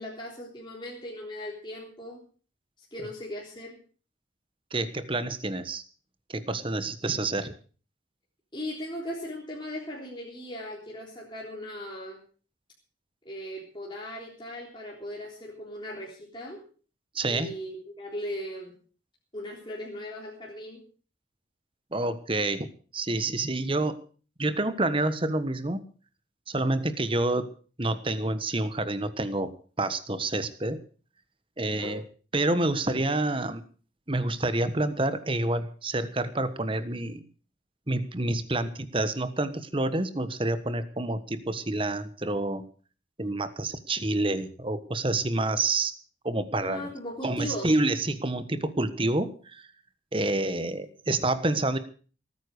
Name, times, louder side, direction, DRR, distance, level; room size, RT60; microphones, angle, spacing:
voice 1, 0.0-2.2 2.9-3.7 8.5-12.2 13.3-16.6 17.3-18.7 19.3-20.8 31.6-32.0 46.6-47.7, equal, 25° left, -3 dB, 3.7 m, -38 dB
voice 2, 4.7-5.8 6.3-7.5 17.1-17.5 21.9-24.0 24.4-25.8 26.5-27.5 27.8-29.5 29.8-30.8 31.6-32.0 32.3-33.6 34.1-37.2 37.9-42.6 43.2-45.9 46.2-46.9 47.2-49.7 50.1-51.8, right 2 dB, 25° right, 12 dB, 1.3 m, -28 dB
18.5 x 9.6 x 6.5 m, 0.41 s
head